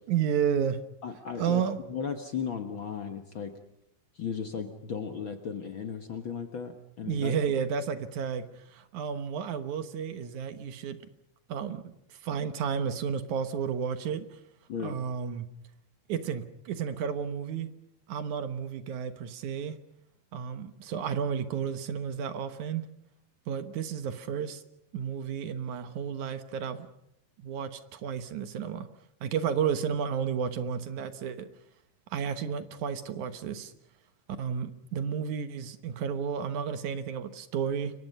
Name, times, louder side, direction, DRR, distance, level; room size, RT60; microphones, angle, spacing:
voice 1, 0.1-0.8 1.4-1.8 7.0-8.5 8.7-11.0 11.5-11.8 12.2-14.3 14.8-15.5 16.1-17.7 18.1-19.8 20.3-22.9 23.5-24.6 24.9-26.9 27.4-28.9 29.2-31.5 32.1-33.7 34.4-37.9, right 7 dB, 65° right, 10 dB, 2.4 m, -32 dB
voice 2, 1.0-3.5 4.1-7.3 14.7-15.0, left 6 dB, 50° left, 6 dB, 1.6 m, -36 dB
29.0 x 23.5 x 5.5 m, 0.78 s
omnidirectional pair, 4.0 m